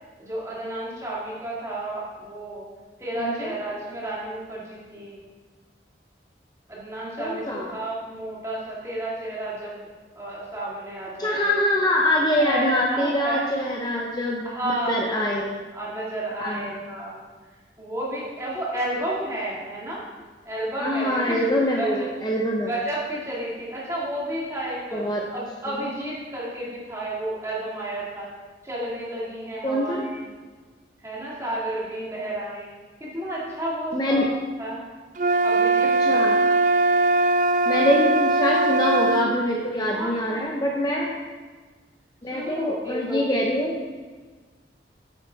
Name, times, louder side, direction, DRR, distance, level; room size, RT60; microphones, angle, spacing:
voice 1, 0.2-2.6 3.0-5.2 6.7-9.9 10.1-11.5 12.4-13.7 14.4-15.4 15.7-17.3 17.8-20.0 20.5-21.4 21.8-22.1 22.7-28.3 28.6-30.3 31.0-32.7 33.0-34.3 34.6-34.8 35.4-36.4 39.9-40.6 42.3-43.4, right 1 dB, 15° right, -6 dB, 2.2 m, -31 dB
voice 2, 3.2-3.5 7.2-7.7 11.2-14.5 14.9-15.5 16.4-16.8 20.8-22.7 24.9-25.2 29.6-30.0 33.9-34.3 36.0-36.4 37.7-41.2 42.2-43.8, left 1 dB, 20° left, -1 dB, 0.7 m, -24 dB
sound 1, 35.2-39.3, right 2 dB, 45° right, 0.4 m, -20 dB
9.0 x 7.3 x 4.0 m, 1.4 s
head